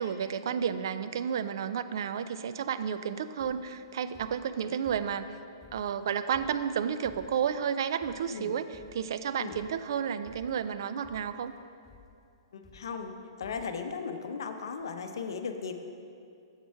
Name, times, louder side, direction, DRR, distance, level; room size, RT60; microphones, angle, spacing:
voice 1, 0.0-5.3 5.7-11.5, right 8 dB, 60° right, 11 dB, 0.4 m, -31 dB
sound 1, 3.4-3.8 4.1-5.3 5.6-7.5 8.0-8.4 8.7-9.2 9.5-9.9 10.3-10.7 11.0-11.5 11.8-12.2 12.6-13.2 13.4-13.8 14.5-14.6 14.8-14.9, left 4 dB, 20° left, 0.6 m, -56 dB
voice 2, 12.5-15.7, left 5 dB, 65° left, 7 dB, 0.6 m, -37 dB
7.2 x 6.0 x 4.6 m, 2.4 s
figure-of-eight pair, 115°, 2 cm